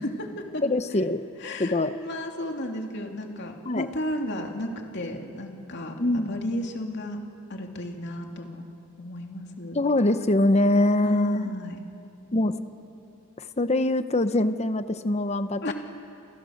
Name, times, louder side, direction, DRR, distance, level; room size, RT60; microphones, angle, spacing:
voice 1, 0.0-0.6 1.4-7.2 7.5-8.7 9.0-9.8 11.0-11.8 15.6-15.7, left 1 dB, 55° left, 2 dB, 2.9 m, -34 dB
voice 2, 0.6-1.2 1.6-2.0 3.7-3.9 6.0-6.3 9.7-11.5 12.3-12.6 13.4-15.7, left 1 dB, 30° left, 11 dB, 0.9 m, -23 dB
28.5 x 28.5 x 6.6 m, 2.7 s
head